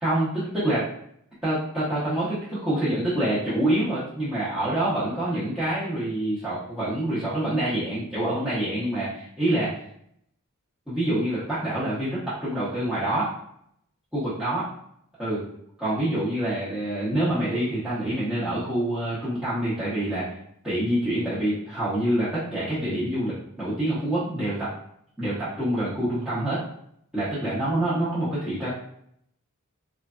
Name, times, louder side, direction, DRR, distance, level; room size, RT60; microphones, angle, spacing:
voice 1, 0.0-0.8 1.4-9.8 10.9-13.3 14.1-14.7 15.2-15.5 15.8-20.3 20.6-24.7 25.2-26.6 27.1-28.7, right 1 dB, 5° right, -13 dB, 0.8 m, -26 dB
3.1 x 2.4 x 2.3 m, 0.71 s
head